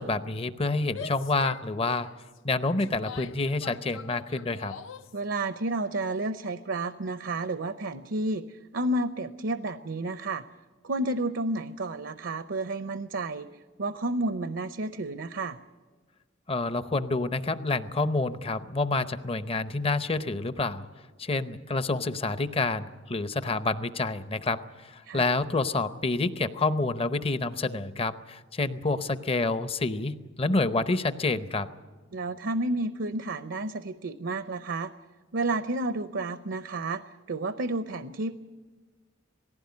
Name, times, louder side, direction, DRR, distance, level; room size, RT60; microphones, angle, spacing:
voice 1, 0.0-2.1 2.4-4.7 16.5-20.9 21.2-31.7, left 3 dB, 30° left, 12 dB, 0.7 m, -28 dB
Female speech woman speaking / Yell, 0.8-5.2, left 6 dB, 80° left, 0.6 m, -43 dB
voice 2, 5.1-10.4 10.8-13.5 13.8-15.6 25.0-25.2 32.1-34.9 35.3-38.4, right 2 dB, 70° right, 11 dB, 0.7 m, -31 dB
18.5 x 16.0 x 9.6 m, 1.4 s
head